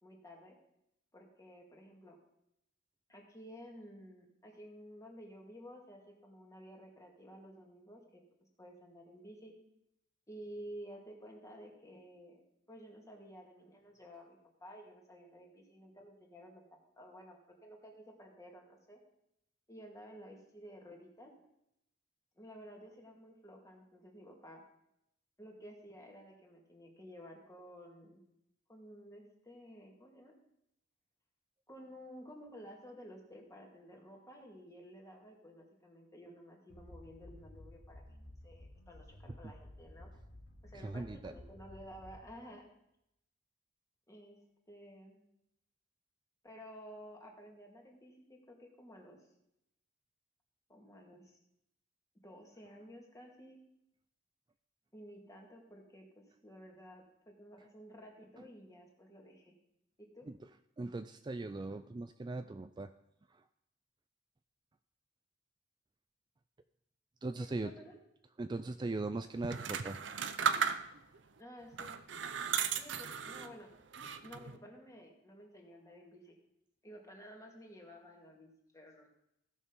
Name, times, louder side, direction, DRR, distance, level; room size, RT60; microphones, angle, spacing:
voice 1, 0.0-0.6 1.1-2.2 3.1-8.2 8.6-9.5 10.3-12.4 12.7-17.4 17.6-19.0 19.7-21.3 22.4-24.6 25.4-28.2 28.7-30.3 31.7-38.0 38.4-40.1 40.6-42.7 44.1-44.4 44.7-45.2 46.4-49.2 50.7-51.4 52.2-53.6 54.9-59.5 60.0-60.3 67.5-68.0 71.4-72.0 72.8-73.7 74.2-76.4 76.8-78.5 78.7-79.1, equal, 15° left, 0 dB, 2.3 m, -53 dB
sound 1, 36.7-42.5, left 1 dB, 90° left, 2.1 m, -54 dB
voice 2, 40.7-41.3 60.3-60.4 60.8-62.9 63.3-63.4 67.2-67.7 68.4-70.0, right 2 dB, 25° right, 10 dB, 0.3 m, -39 dB
sound 2, 69.4-71.2 71.7-73.5 73.9-74.6, right 6 dB, 75° right, 0.7 m, -35 dB
15.5 x 6.6 x 5.3 m, 0.81 s
head